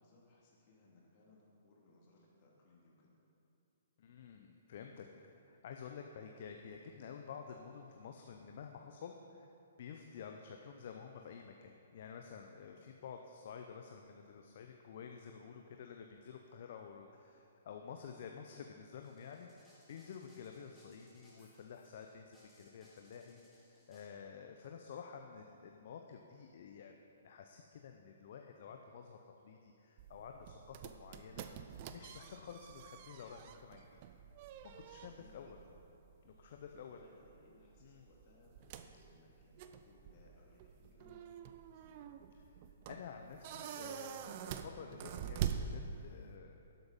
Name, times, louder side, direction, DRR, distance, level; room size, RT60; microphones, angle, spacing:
voice 1, 0.0-3.2 35.1-35.8 36.6-41.3 41.7-42.0, left 2 dB, 40° left, -4 dB, 2.9 m, -65 dB
voice 2, 4.0-9.5 9.8-27.0 27.2-31.5 31.8-34.0 34.6-35.6 36.2-37.0 37.8-38.1 42.9-46.6, left 6 dB, 55° left, 4 dB, 0.7 m, -51 dB
sound 1, 19.0-24.1, left 1 dB, ahead, 2.5 m, -68 dB
sound 2, 30.0-46.4, right 8 dB, 40° right, 0.6 m, -46 dB
12.0 x 7.9 x 5.4 m, 2.7 s
figure-of-eight pair, 125°, 0 cm